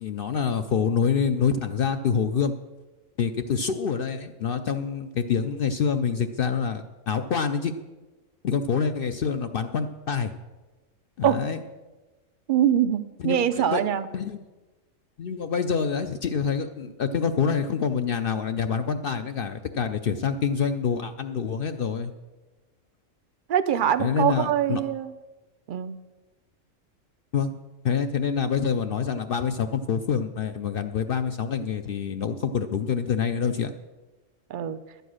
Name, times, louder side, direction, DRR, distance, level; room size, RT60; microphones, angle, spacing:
voice 1, 0.0-2.5 3.2-7.7 8.4-10.3 11.2-11.6 13.2-13.8 14.1-14.4 15.2-22.1 24.0-24.8 27.3-27.5 27.8-33.7, left 6 dB, 60° left, 8 dB, 0.6 m, -26 dB
voice 2, 12.5-14.1 23.5-25.1 25.7-26.0 34.5-34.8, right 10 dB, 60° right, 12 dB, 0.5 m, -23 dB
11.5 x 7.9 x 6.3 m, 1.2 s
omnidirectional pair, 1.4 m